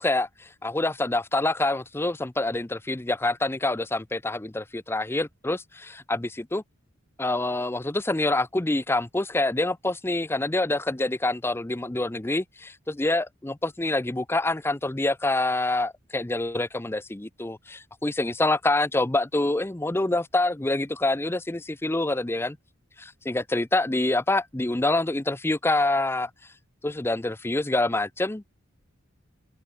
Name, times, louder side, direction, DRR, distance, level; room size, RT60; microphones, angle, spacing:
voice 1, 0.0-6.6 7.2-22.6 23.0-26.3 26.8-28.4, left 2 dB, 10° left, 0.5 m, -26 dB
head